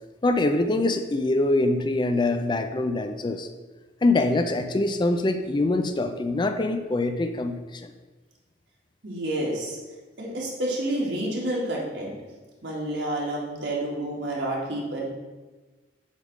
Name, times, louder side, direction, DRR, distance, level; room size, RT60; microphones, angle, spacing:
voice 1, 0.2-3.5 4.0-7.9, left 2 dB, 25° left, 8 dB, 0.4 m, -24 dB
voice 2, 9.0-9.8 10.2-12.1 12.6-15.1, right 1 dB, 75° right, -3 dB, 2.1 m, -29 dB
8.2 x 3.5 x 6.2 m, 1.3 s
head